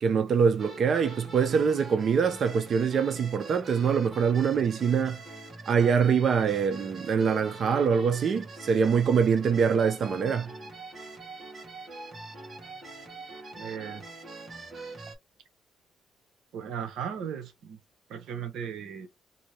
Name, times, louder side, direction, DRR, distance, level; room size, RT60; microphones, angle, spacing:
voice 1, 0.0-5.2 5.7-10.5, right 6 dB, 55° right, 0.6 m, -24 dB
sound 1, 0.6-15.2, right 2 dB, 40° right, 1.4 m, -43 dB
voice 2, 13.6-14.0 16.5-17.8 18.1-19.1, right 8 dB, 80° right, 0.9 m, -36 dB
2.7 x 2.7 x 3.1 m
cardioid pair, 90°, 0 cm